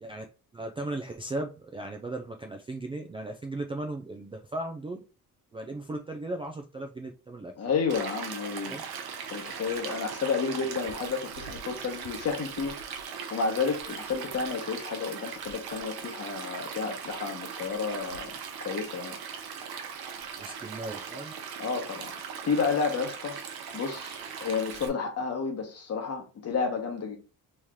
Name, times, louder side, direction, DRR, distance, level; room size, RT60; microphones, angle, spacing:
voice 1, 0.5-5.0 5.5-7.5 8.7-8.8 20.4-21.3, right 2 dB, 15° right, 0.3 m, -36 dB
voice 2, 7.6-8.8 9.3-12.7 13.3-18.3 18.6-19.2 21.6-22.1 22.4-23.4 23.7-27.2, left 5 dB, 45° left, 1.1 m, -31 dB
Stream, 7.9-24.9, right 7 dB, 90° right, 0.7 m, -39 dB
3.2 x 2.8 x 3.6 m
cardioid pair, 130°, 36 cm